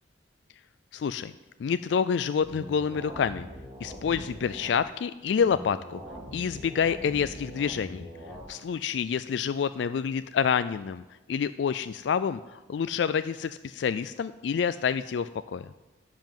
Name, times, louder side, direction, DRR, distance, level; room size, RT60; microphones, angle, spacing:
voice 1, 0.9-1.3 1.6-3.4 3.8-6.0 6.3-8.1 8.5-11.0 11.3-15.7, left 7 dB, 65° left, 13 dB, 0.3 m, -28 dB
sound 1, 2.4-4.8 5.4-8.4, equal, 20° right, 4.1 m, -42 dB
12.0 x 5.7 x 9.1 m, 1.1 s
head